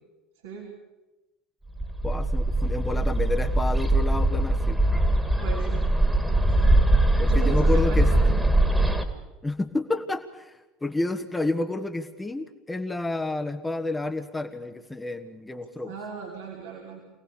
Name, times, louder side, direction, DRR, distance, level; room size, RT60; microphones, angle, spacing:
voice 1, 0.4-0.8 5.4-6.0 6.3-6.8 7.1-8.5 15.6-17.0, right 6 dB, 70° right, -1 dB, 3.2 m, -38 dB
Bird, 1.8-9.0, right 1 dB, 5° right, 2.3 m, -22 dB
voice 2, 2.0-4.8 7.2-8.1 9.4-15.9, left 2 dB, 10° left, 7 dB, 1.5 m, -30 dB
27.0 x 18.0 x 7.0 m, 1.1 s
figure-of-eight pair, 65°, 0 cm